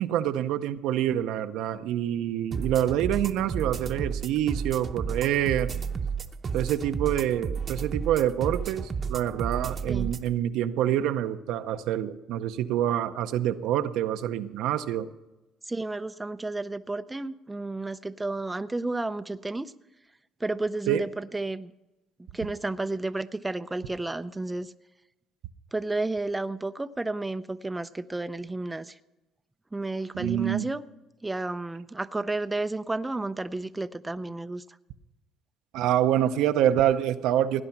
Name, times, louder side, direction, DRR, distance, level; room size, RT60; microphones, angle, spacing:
voice 1, 0.0-5.7 6.5-15.1 20.9-21.1 30.1-30.7 35.7-37.6, right 11 dB, 80° right, 9 dB, 0.7 m, -26 dB
sound 1, 2.5-10.3, right 6 dB, 40° right, 0.9 m, -32 dB
voice 2, 15.7-19.7 20.4-21.7 22.3-24.7 25.7-29.0 29.7-30.8 31.2-34.6, right 2 dB, 15° right, 10 dB, 0.5 m, -32 dB
17.5 x 9.8 x 5.9 m, 1.0 s
supercardioid pair, 90°, 0 cm